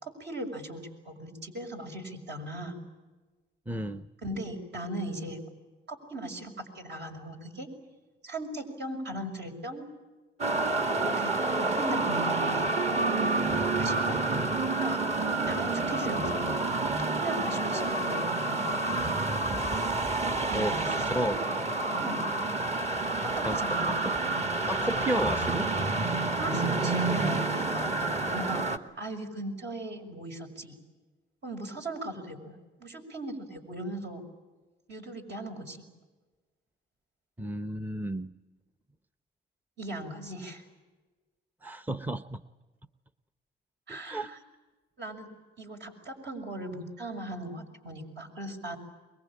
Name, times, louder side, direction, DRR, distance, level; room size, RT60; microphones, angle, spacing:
voice 1, 0.0-2.8 4.2-5.4 5.9-7.7 8.2-9.9 11.0-12.7 12.9-13.4 13.8-14.2 14.8-15.0 15.5-16.6 17.0-18.9 20.5-21.1 22.0-22.2 23.2-24.0 26.4-28.6 28.9-30.8 31.4-34.2 34.9-35.8 39.8-40.6 43.9-44.4 45.0-45.3 45.6-48.8, right 1 dB, 60° right, 3 dB, 6.2 m, -38 dB
voice 2, 3.7-4.1 20.5-21.4 23.4-23.6 23.9-24.1 24.7-25.7 37.4-38.3 41.6-42.4 43.9-44.3, right 1 dB, 10° right, 11 dB, 0.8 m, -32 dB
sound 1, 10.4-28.8, right 2 dB, 35° right, 1.9 m, -28 dB
24.0 x 22.5 x 8.9 m, 1.2 s
cardioid pair, 90°, 20 cm